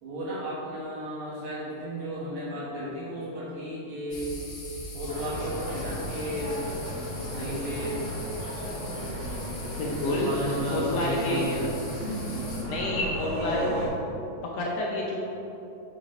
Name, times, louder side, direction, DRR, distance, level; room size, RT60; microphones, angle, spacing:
voice 1, 0.0-4.3 4.9-6.6 7.2-8.0 10.0-11.7 12.3-12.7, equal, 70° right, -8 dB, 3.1 m, -34 dB
sound 1, 4.1-12.6, left 1 dB, 50° left, 1.3 m, -41 dB
sound 2, 5.1-13.9, equal, 55° right, 2.5 m, -34 dB
voice 2, 9.7-10.3 10.7-11.5 12.7-13.7 14.5-15.2, left 1 dB, 70° left, -3 dB, 1.7 m, -29 dB
6.9 x 4.0 x 5.2 m, 2.9 s
omnidirectional pair, 3.4 m